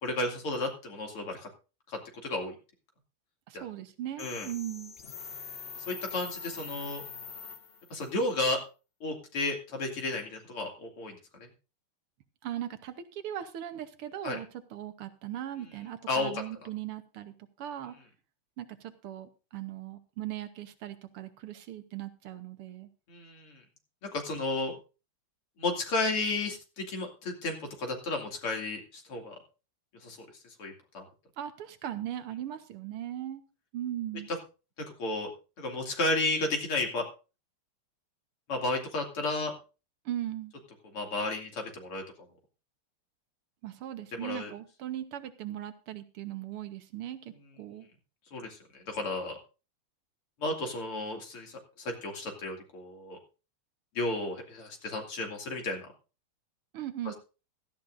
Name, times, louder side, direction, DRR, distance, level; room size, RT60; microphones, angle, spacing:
voice 1, 0.0-1.5 1.9-2.6 3.5-3.6 4.2-4.5 5.8-7.0 7.9-8.6 9.0-11.2 14.2-14.4 16.1-16.3 23.1-23.6 24.1-24.8 25.6-29.4 30.0-30.2 30.6-31.0 35.0-35.3 35.6-37.1 38.5-39.5 40.9-42.0 44.1-44.5 48.3-49.4 50.4-53.2 54.0-55.8, left 2 dB, 80° left, 2 dB, 3.4 m, -33 dB
voice 2, 3.5-4.9 12.4-18.0 18.6-22.9 31.4-33.4 33.7-34.3 40.1-40.5 43.6-47.9 56.7-57.1, right 12 dB, 85° right, 10 dB, 2.0 m, -39 dB
sound 1, 4.2-8.1, left 6 dB, 60° left, 0.6 m, -43 dB
16.5 x 13.5 x 2.6 m, 0.33 s
omnidirectional pair, 2.4 m